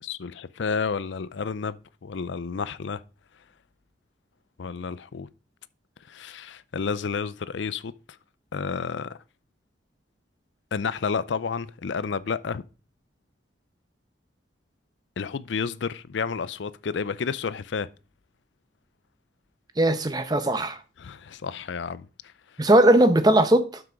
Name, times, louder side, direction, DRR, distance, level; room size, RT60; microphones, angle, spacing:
voice 1, 0.0-3.0 4.6-5.3 6.1-7.9 8.5-9.2 10.7-12.6 15.2-17.9 21.0-22.1, left 5 dB, 80° left, 0.5 m, -30 dB
voice 2, 19.8-20.8 22.6-23.8, right 1 dB, 20° right, 0.7 m, -19 dB
7.8 x 6.0 x 5.1 m
head